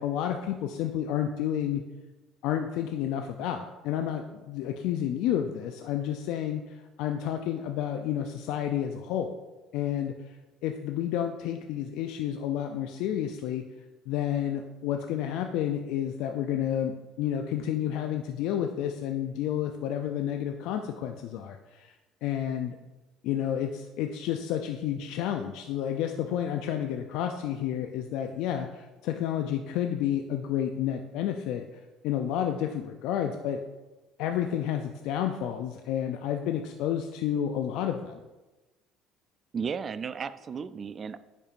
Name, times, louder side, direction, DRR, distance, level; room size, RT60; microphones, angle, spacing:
voice 1, 0.0-1.8 2.4-9.4 9.7-10.4 10.6-13.6 14.1-22.0 22.2-22.8 23.2-31.6 32.0-33.6 34.2-38.2, left 10 dB, 70° left, 5 dB, 0.4 m, -30 dB
voice 2, 39.5-41.2, right 6 dB, 40° right, 14 dB, 0.4 m, -34 dB
9.6 x 4.5 x 2.5 m, 1.1 s
hypercardioid pair, 70°, 0 cm